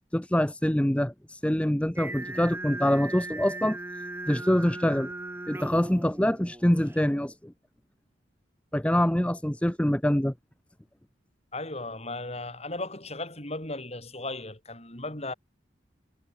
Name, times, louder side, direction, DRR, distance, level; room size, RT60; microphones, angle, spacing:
voice 1, 0.1-3.8 4.3-5.1 5.5-7.5 8.7-10.3, equal, 5° left, 0.7 m, -25 dB
Singing, 2.0-7.1, right 2 dB, 10° right, 1.0 m, -38 dB
voice 2, 11.5-15.3, left 2 dB, 35° left, 7.1 m, -36 dB
head